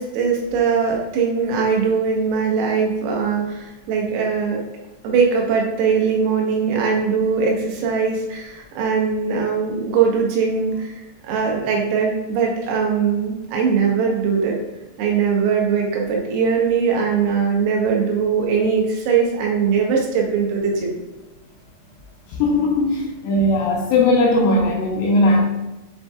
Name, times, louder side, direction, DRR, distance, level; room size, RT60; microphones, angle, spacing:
voice 1, 0.0-4.6 5.0-14.6 15.0-21.0, right 6 dB, 90° right, -1 dB, 3.7 m, -21 dB
voice 2, 22.4-25.4, left 2 dB, 85° left, -1 dB, 2.8 m, -18 dB
8.0 x 2.7 x 2.3 m, 1.1 s
omnidirectional pair, 5.9 m